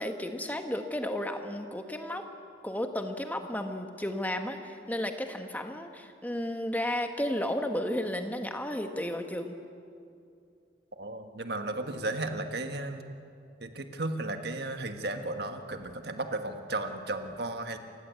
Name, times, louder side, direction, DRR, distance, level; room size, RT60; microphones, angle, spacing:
voice 1, 0.0-2.3 2.6-9.6, left 1 dB, 10° left, 5 dB, 1.3 m, -33 dB
voice 2, 11.0-13.1 13.6-17.8, right 2 dB, 60° right, 6 dB, 1.5 m, -34 dB
28.5 x 16.0 x 8.3 m, 2.5 s
head